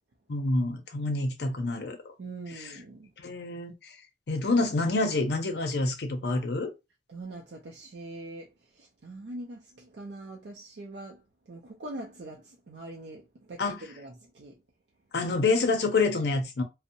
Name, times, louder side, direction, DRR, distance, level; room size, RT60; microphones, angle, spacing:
voice 1, 0.3-2.1 2.5-2.8 3.2-4.0 4.3-6.7 13.6-13.9 15.1-16.6, left 3 dB, 70° left, 0.5 m, -27 dB
voice 2, 2.2-3.1 7.1-8.5 8.7-11.2 11.5-14.5, right 2 dB, 70° right, 0.4 m, -43 dB
2.6 x 2.0 x 2.6 m
head